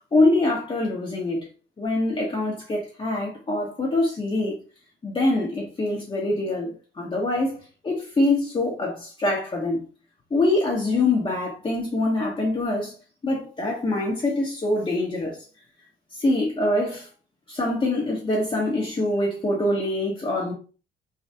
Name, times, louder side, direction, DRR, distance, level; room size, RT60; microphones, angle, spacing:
voice 1, 0.1-1.5 1.8-4.6 5.0-7.6 7.8-9.8 10.3-12.9 13.2-15.4 16.2-17.1 17.5-20.5, left 2 dB, 25° left, 0.9 m, -24 dB
3.2 x 2.2 x 2.8 m
cardioid pair, 90°, 20 cm